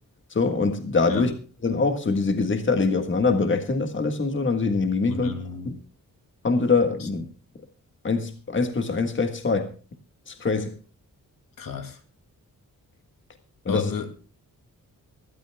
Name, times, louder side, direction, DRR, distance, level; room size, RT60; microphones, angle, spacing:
voice 1, 0.4-1.3 1.6-5.3 5.7-5.8 6.4-7.3 8.0-9.7 10.3-10.7 13.7-13.9, left 4 dB, 35° left, 1.6 m, -23 dB
voice 2, 5.0-5.8 7.0-7.1 11.6-12.0 13.7-14.1, left 5 dB, 80° left, 2.4 m, -32 dB
24.5 x 12.5 x 2.3 m
wide cardioid pair, 140°, 33 cm